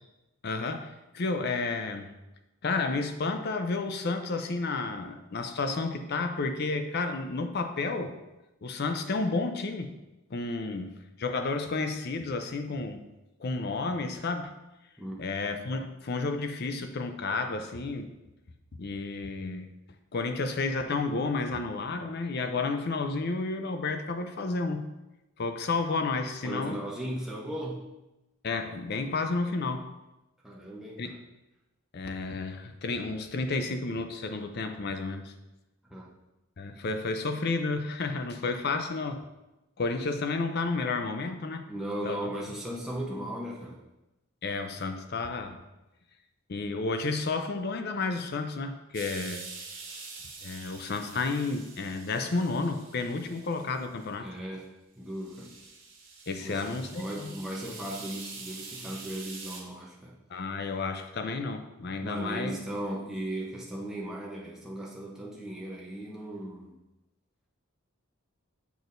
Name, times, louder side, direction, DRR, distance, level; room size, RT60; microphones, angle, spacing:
voice 1, 0.4-2.2 2.6-8.1 8.6-10.0 10.3-13.1 13.4-14.5 15.2-18.1 18.8-19.7 20.1-24.9 25.4-26.8 28.4-29.9 31.0-31.1 31.9-35.3 36.6-39.2 39.8-41.7 42.0-42.3 44.4-45.6 46.5-49.5 50.4-54.3 56.3-57.3 60.3-62.5, left 3 dB, 50° left, 7 dB, 0.5 m, -31 dB
voice 2, 26.4-27.8 30.4-31.2 35.9-36.1 41.7-43.8 54.2-54.7 55.0-55.5 56.4-60.2 61.8-66.8, right 1 dB, ahead, -4 dB, 0.8 m, -37 dB
sound 1, 48.9-54.1 54.6-54.7 55.1-59.6, right 4 dB, 60° right, 1.6 m, -45 dB
7.0 x 6.1 x 2.6 m, 0.98 s
head